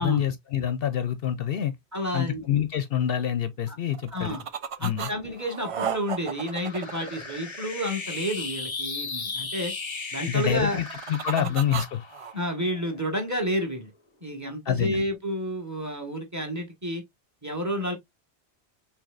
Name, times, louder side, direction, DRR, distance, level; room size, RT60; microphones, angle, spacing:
voice 1, 0.0-1.8 2.1-4.4 4.8-5.1 10.3-12.0 14.7-15.0, left 10 dB, 65° left, 0.8 m, -27 dB
voice 2, 1.9-2.4 3.7-3.8 4.1-4.5 4.8-9.7 10.1-10.8 11.4-11.5 12.3-13.9 14.2-17.0 17.4-17.9, equal, 15° right, 1.5 m, -30 dB
sound 1, 3.9-5.1 5.4-7.9 10.5-12.3, right 8 dB, 60° right, 0.3 m, -34 dB
sound 2, 4.8-13.4, left 4 dB, 30° left, 0.7 m, -37 dB
6.2 x 3.3 x 2.4 m
omnidirectional pair, 1.1 m